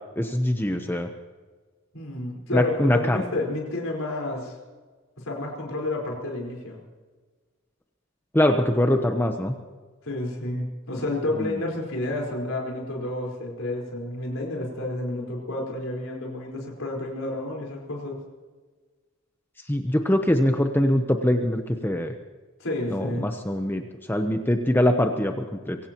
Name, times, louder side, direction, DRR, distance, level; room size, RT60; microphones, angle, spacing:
voice 1, 0.2-1.1 2.5-3.2 8.3-9.6 11.3-11.5 19.7-22.1 22.9-23.8 24.1-25.8, left 1 dB, 10° left, 5 dB, 0.8 m, -23 dB
voice 2, 1.9-4.5 5.2-6.8 10.0-18.2 22.6-23.3, left 2 dB, 80° left, -1 dB, 4.6 m, -30 dB
24.0 x 17.0 x 3.0 m, 1.4 s
head